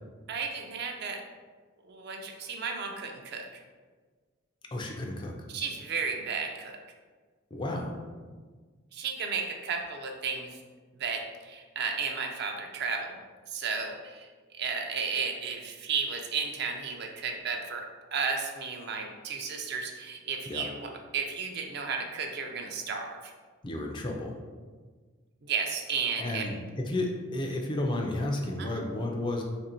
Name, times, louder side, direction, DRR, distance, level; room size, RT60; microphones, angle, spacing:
voice 1, 0.3-1.2 1.9-3.5 5.5-6.8 8.9-10.6 11.0-13.2 13.5-14.3 14.6-17.8 18.1-23.3 25.4-26.5 28.6-28.8, right 5 dB, 50° right, 2 dB, 0.4 m, -33 dB
voice 2, 4.7-5.5 7.5-7.9 20.5-20.7 23.6-24.4 26.2-29.4, left 1 dB, 25° left, 1 dB, 0.3 m, -32 dB
2.9 x 2.5 x 4.2 m, 1.5 s
head